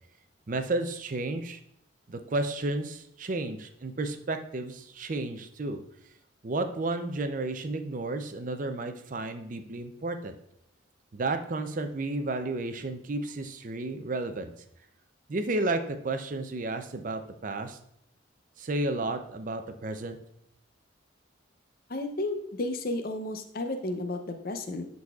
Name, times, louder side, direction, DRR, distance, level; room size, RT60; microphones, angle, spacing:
voice 1, 0.5-1.6 2.1-5.8 6.4-10.4 11.1-14.5 15.3-17.8 18.6-20.2, right 2 dB, 40° right, 8 dB, 0.5 m, -32 dB
voice 2, 21.9-24.9, left 2 dB, 50° left, 6 dB, 0.6 m, -32 dB
11.0 x 4.1 x 2.4 m, 0.75 s
head